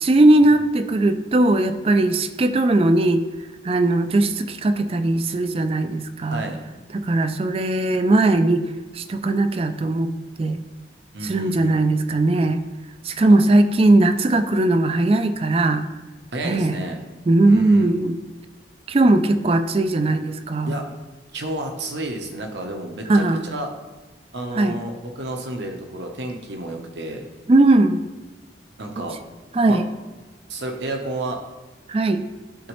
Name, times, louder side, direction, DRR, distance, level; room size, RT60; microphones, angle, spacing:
voice 1, 0.0-3.2 3.6-6.4 6.9-8.6 8.9-10.1 10.4-10.6 11.2-12.6 13.0-15.9 16.4-16.8 17.3-18.1 18.9-20.8 23.1-23.5 24.6-24.8 27.5-28.0 29.5-29.9 31.9-32.2, right 2 dB, 30° right, 10 dB, 0.3 m, -18 dB
voice 2, 6.3-6.6 11.1-11.7 13.3-13.4 16.3-17.0 17.5-17.9 20.7-20.8 21.3-23.7 24.3-27.2 28.8-29.2 29.7-29.8 30.5-31.4, right 1 dB, 75° right, 3 dB, 1.0 m, -31 dB
11.5 x 4.0 x 3.1 m, 1.2 s
head